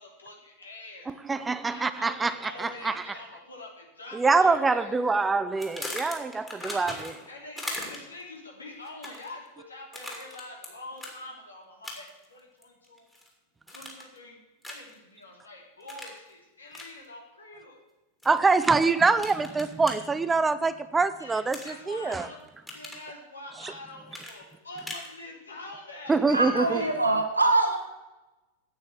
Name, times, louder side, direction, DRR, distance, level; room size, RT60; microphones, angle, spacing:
voice 1, 0.0-1.1 1.7-5.0 6.6-13.1 13.7-14.4 14.7-17.8 21.2-22.4 22.7-26.9, left 2 dB, 75° left, 3.0 m, -45 dB
voice 2, 1.1-2.3 2.6-3.0 4.1-7.1 18.3-21.6 21.9-22.3 26.1-26.8, right 4 dB, 15° right, 0.5 m, -24 dB
sound 1, 5.6-7.3 7.6-8.2 8.9-9.3 9.9-10.7 11.0-11.2 11.8-12.2 12.6-13.3 13.7-14.2 14.6-14.9 15.9-16.2 16.7-16.9 18.2-18.7 19.2-19.9 21.5-22.2 22.5-23.0 24.1-25.1, left 1 dB, 5° left, 2.7 m, -39 dB
voice 3, 26.3-27.8, right 2 dB, 80° right, 1.9 m, -23 dB
9.3 x 8.3 x 7.9 m
figure-of-eight pair, 90°, 0 cm